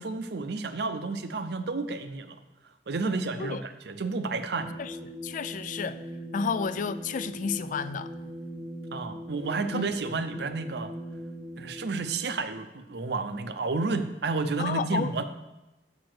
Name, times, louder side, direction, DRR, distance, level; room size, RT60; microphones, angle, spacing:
voice 1, 0.0-2.4 2.9-4.7 8.9-10.9 11.6-15.2, right 3 dB, 70° right, 0.6 m, -31 dB
sound 1, 4.6-12.5, equal, 10° right, 0.6 m, -41 dB
voice 2, 5.2-6.0 6.3-8.1 9.7-9.9 14.6-15.1, left 5 dB, 50° left, 0.3 m, -31 dB
6.6 x 5.2 x 6.1 m
head